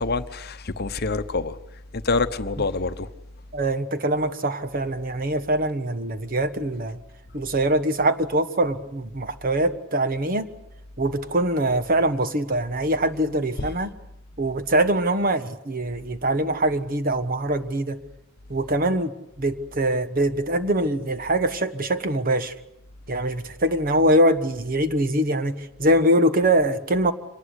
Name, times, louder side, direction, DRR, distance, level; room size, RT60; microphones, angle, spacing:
voice 1, 0.0-1.6 1.9-3.1 13.6-13.7, left 3 dB, 45° left, 0.9 m, -26 dB
voice 2, 3.5-7.0 7.3-10.5 11.0-13.9 14.4-18.0 18.5-19.1 19.4-22.5 23.1-27.1, right 1 dB, 40° right, 1.3 m, -23 dB
25.5 x 19.5 x 8.2 m
head